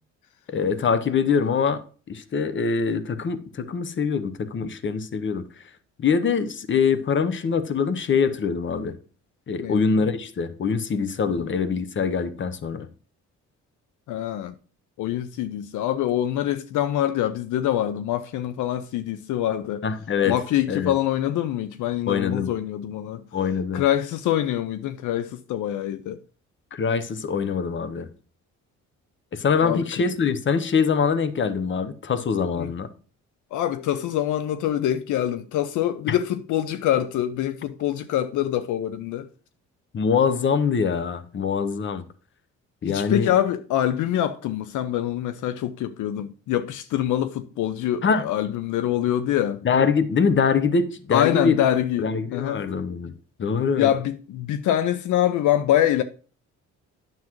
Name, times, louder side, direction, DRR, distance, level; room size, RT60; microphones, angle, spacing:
voice 1, 0.5-1.8 2.1-5.4 6.0-8.9 9.5-12.9 19.8-20.4 20.7-20.9 22.1-22.5 23.3-23.8 26.7-28.1 29.3-32.9 39.9-42.0 42.8-43.3 48.0-48.2 49.6-51.6 52.0-53.1 53.4-53.9, left 5 dB, 40° left, 0.9 m, -23 dB
voice 2, 9.6-10.1 11.3-11.5 14.1-14.5 15.0-19.9 20.3-23.2 23.7-26.2 29.6-30.0 32.6-32.7 33.5-39.3 42.9-49.6 51.1-52.6 53.8-56.0, left 11 dB, 80° left, 0.6 m, -25 dB
9.6 x 7.3 x 3.1 m
cardioid pair, 90°, 30 cm